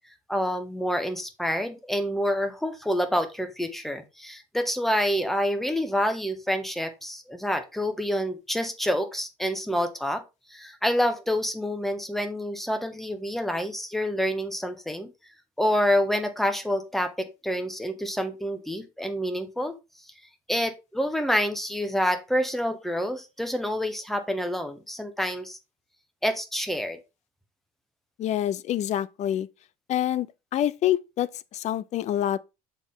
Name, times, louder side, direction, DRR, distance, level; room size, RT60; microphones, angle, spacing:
voice 1, 0.3-10.2 10.5-15.1 15.6-19.7 20.5-25.6 26.2-27.0, equal, ahead, 1.1 m, -27 dB
voice 2, 28.2-29.5 29.9-32.4, left 11 dB, 50° left, 0.4 m, -27 dB
6.9 x 4.4 x 3.7 m
cardioid pair, 120°, 15 cm